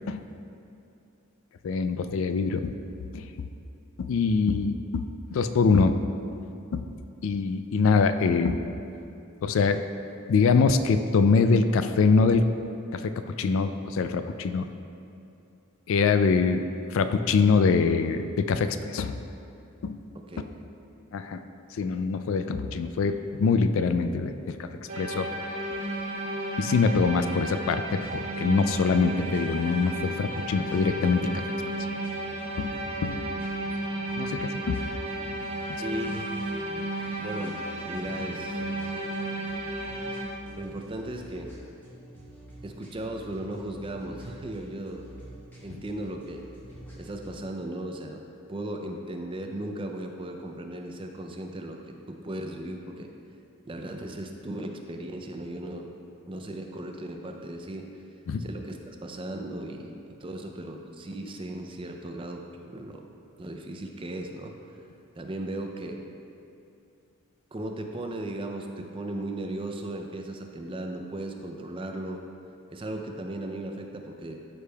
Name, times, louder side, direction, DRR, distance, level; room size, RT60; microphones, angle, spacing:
voice 1, 1.6-2.7 3.1-3.3 4.0-5.1 5.3-6.0 6.7-6.8 7.2-8.6 9.4-9.8 10.3-12.5 12.9-13.1 13.4-14.7 15.9-16.6 16.9-19.1 19.8-20.0 21.1-21.4 21.7-24.3 24.6-24.7 25.0-25.3 26.6-31.4 32.6-33.4 34.2-34.8 35.7-35.8 58.3-58.5, left 4 dB, 65° left, 9 dB, 0.3 m, -24 dB
sound 1, 24.9-40.2, right 1 dB, 75° right, 1.2 m, -33 dB
sound 2, 28.0-47.4, equal, 10° left, 1.1 m, -47 dB
voice 2, 35.8-36.6 36.9-38.6 40.5-41.5 42.6-45.1 45.6-46.4 47.0-48.2 48.5-51.8 52.1-53.1 53.7-55.9 56.3-57.9 58.4-63.1 63.4-64.5 65.2-66.0 67.5-72.2 72.7-74.4, right 1 dB, 25° right, 3 dB, 0.4 m, -36 dB
12.5 x 5.1 x 2.3 m, 2.6 s
head